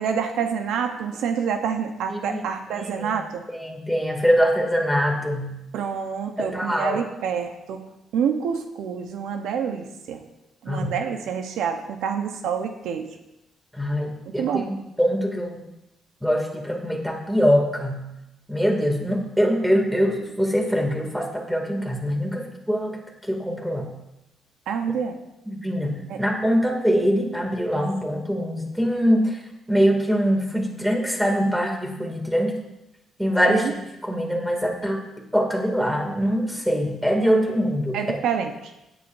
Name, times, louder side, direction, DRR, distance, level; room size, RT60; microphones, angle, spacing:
voice 1, 0.0-3.4 5.7-7.8 8.1-10.2 10.6-13.1 14.4-14.7 24.7-25.2 26.1-26.2 33.5-33.7 37.9-38.5, right 7 dB, 85° right, 5 dB, 1.0 m, -27 dB
voice 2, 2.7-3.1 3.5-5.6 6.4-7.0 10.7-10.9 13.7-15.6 16.2-18.0 18.5-23.0 23.3-23.9 25.5-29.4 29.7-32.6 33.2-33.8 34.0-35.0 35.3-38.2, equal, ahead, 1 dB, 2.6 m, -23 dB
16.5 x 9.9 x 2.7 m, 0.90 s
cardioid pair, 90°, 0 cm